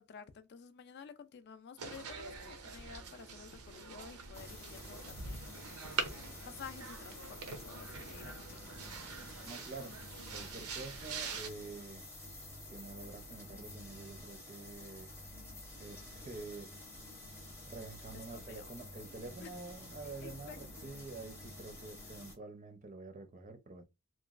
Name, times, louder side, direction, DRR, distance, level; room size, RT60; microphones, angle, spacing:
voice 1, 0.0-5.5 6.4-8.9 18.1-18.7 19.4-19.6 20.0-20.6, left 6 dB, 50° left, 0.3 m, -52 dB
sound 1, 1.8-11.5, right 5 dB, 85° right, 0.6 m, -44 dB
sound 2, 4.3-22.4, left 1 dB, 10° left, 0.6 m, -50 dB
voice 2, 9.4-10.0 10.3-12.1 12.7-15.1 15.8-16.8 17.7-23.8, right 3 dB, 35° right, 0.5 m, -48 dB
3.0 x 2.2 x 2.4 m
head